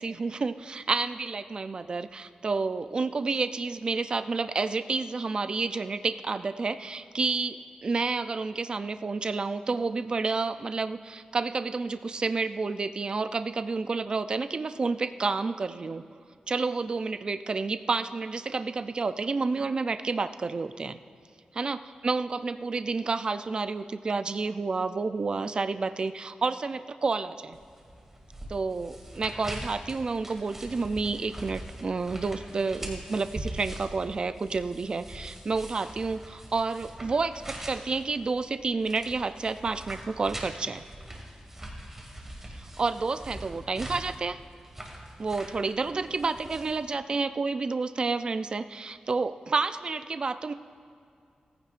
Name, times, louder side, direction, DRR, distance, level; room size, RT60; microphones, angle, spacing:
voice 1, 0.0-16.0 16.5-21.0 21.5-27.6 28.5-40.8 42.6-44.4 45.2-50.5, right 4 dB, 35° right, 11 dB, 0.4 m, -30 dB
sound 1, 27.5-46.8, right 1 dB, 15° right, 1.6 m, -43 dB
17.5 x 15.0 x 2.5 m, 2.4 s
wide cardioid pair, 150°, 3 cm